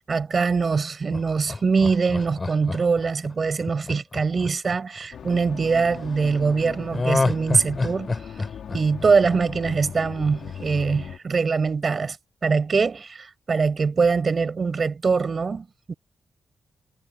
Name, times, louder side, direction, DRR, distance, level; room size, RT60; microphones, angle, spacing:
voice 1, 0.1-8.1 8.7-12.2 12.4-15.9, right 5 dB, 40° right, 5.9 m, -23 dB
Laughter, 1.1-5.3 6.9-9.9 10.3-10.4, left 3 dB, 25° left, 5.9 m, -28 dB
sound 1, 5.1-11.2, left 8 dB, 80° left, 4.6 m, -38 dB
wide cardioid pair, 120°, 0 cm